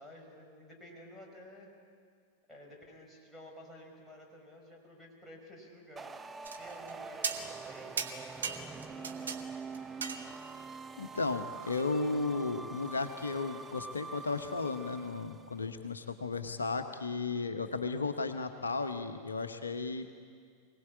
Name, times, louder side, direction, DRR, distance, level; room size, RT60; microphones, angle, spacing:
voice 1, 0.0-1.7 2.5-6.2 6.6-9.4, left 1 dB, ahead, -2 dB, 5.4 m, -53 dB
sound 1, 6.0-15.6, right 4 dB, 15° right, 0.7 m, -45 dB
sound 2, 6.4-6.9 7.2-7.7 8.0-9.4 9.7-10.6 11.7-11.9, right 5 dB, 70° right, 1.6 m, -37 dB
voice 2, 11.0-20.1, left 3 dB, 75° left, 8 dB, 1.0 m, -34 dB
24.5 x 18.0 x 8.5 m, 2.1 s
figure-of-eight pair, 90°, 0 cm